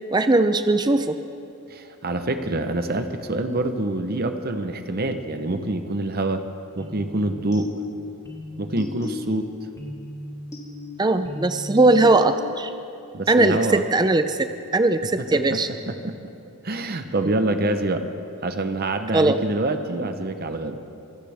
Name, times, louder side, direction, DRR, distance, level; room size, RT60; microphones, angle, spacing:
voice 1, 0.1-1.2 11.0-12.7 13.3-15.7 19.1-19.4, right 2 dB, 20° right, 9 dB, 0.5 m, -19 dB
voice 2, 1.7-6.4 6.8-7.7 8.6-9.5 13.1-13.8 15.2-16.3 16.6-18.0 18.4-20.8, right 2 dB, 45° right, 7 dB, 0.8 m, -26 dB
sound 1, 6.8-12.7, left 2 dB, 15° left, 1.8 m, -36 dB
24.5 x 16.5 x 3.5 m, 2.6 s
head